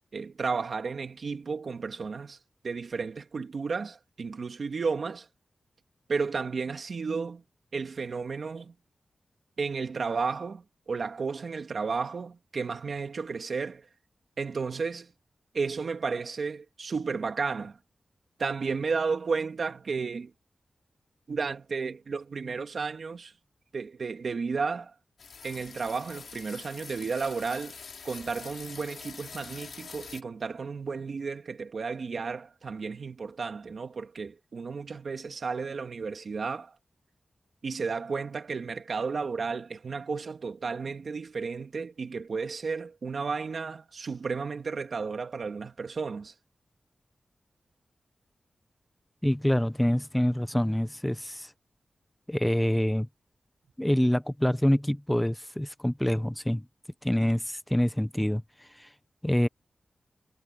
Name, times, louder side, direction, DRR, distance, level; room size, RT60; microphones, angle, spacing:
voice 1, 0.1-2.4 2.6-5.3 6.1-7.4 7.7-8.7 9.6-13.9 14.4-15.1 15.5-17.8 18.4-20.3 21.3-23.3 23.7-24.9 25.4-27.8 28.0-36.7 37.6-46.3, right 5 dB, 65° right, 2.3 m, -33 dB
sound 1, 25.2-30.2, left 5 dB, 85° left, 2.6 m, -45 dB
voice 2, 49.2-51.5 52.3-53.1 53.8-56.6 57.0-58.9 59.2-59.5, equal, 5° left, 0.6 m, -26 dB
wide cardioid pair, 100°, 0 cm